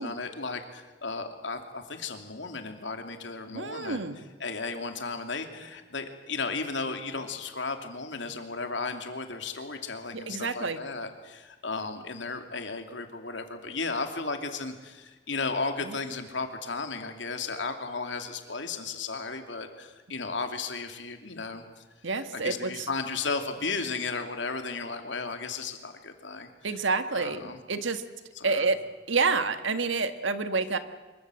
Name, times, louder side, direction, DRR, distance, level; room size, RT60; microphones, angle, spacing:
voice 1, 0.0-4.0 4.4-21.6 22.3-26.5 27.1-27.6 28.4-28.7, left 4 dB, 75° left, 6 dB, 2.8 m, -34 dB
voice 2, 3.5-4.2 10.1-10.8 15.8-15.9 22.0-22.9 26.6-28.0 28.4-28.8 29.1-30.8, right 4 dB, 85° right, 10 dB, 1.7 m, -28 dB
25.5 x 23.0 x 7.8 m, 1.2 s
head